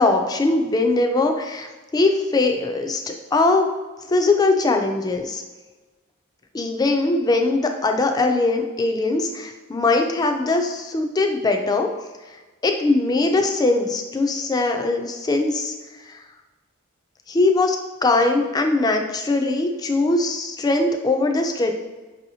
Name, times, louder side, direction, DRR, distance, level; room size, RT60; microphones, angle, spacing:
voice 1, 0.0-3.7 4.1-5.4 6.5-11.9 12.6-16.2 17.3-17.8 18.0-21.7, left 2 dB, 20° left, 4 dB, 0.3 m, -21 dB
4.7 x 2.7 x 2.7 m, 1.2 s
head